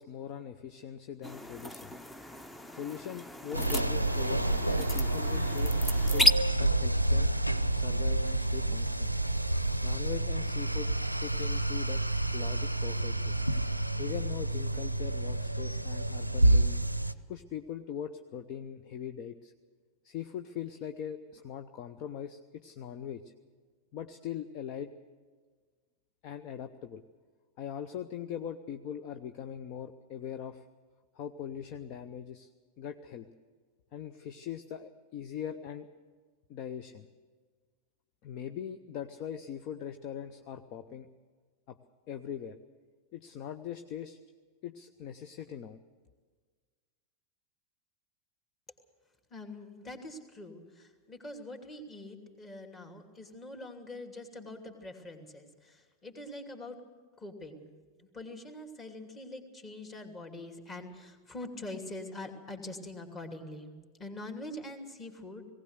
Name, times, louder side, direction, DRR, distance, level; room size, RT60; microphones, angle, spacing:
voice 1, 0.0-1.9 2.7-6.3 6.5-7.3 7.7-9.1 9.8-10.9 11.2-12.0 12.3-13.3 14.0-16.8 17.3-19.5 20.0-23.3 23.9-24.9 26.2-27.0 27.6-30.6 31.1-32.5 32.8-33.3 33.9-35.9 36.5-37.1 38.2-41.1 41.7-41.8 42.1-42.6 43.1-44.2 44.6-45.8, left 9 dB, 40° left, 9 dB, 0.8 m, -41 dB
sound 1, 1.2-6.3, equal, 10° left, 0.9 m, -33 dB
sound 2, 3.5-17.1, right 2 dB, 90° right, 0.6 m, -29 dB
voice 2, 49.3-56.8 57.2-65.4, left 1 dB, 25° left, 4 dB, 2.7 m, -44 dB
19.0 x 17.5 x 8.1 m, 1.5 s
figure-of-eight pair, 90°, 0 cm